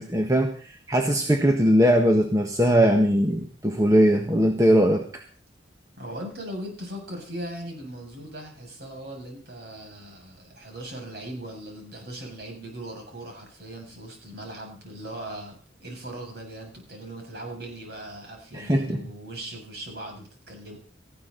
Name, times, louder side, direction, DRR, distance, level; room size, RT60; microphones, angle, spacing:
voice 1, 0.0-5.0 18.5-19.0, equal, 15° right, 3 dB, 1.5 m, -20 dB
voice 2, 6.0-15.6 15.8-20.8, right 1 dB, 55° right, 1 dB, 7.1 m, -39 dB
18.5 x 15.0 x 4.1 m, 0.42 s
head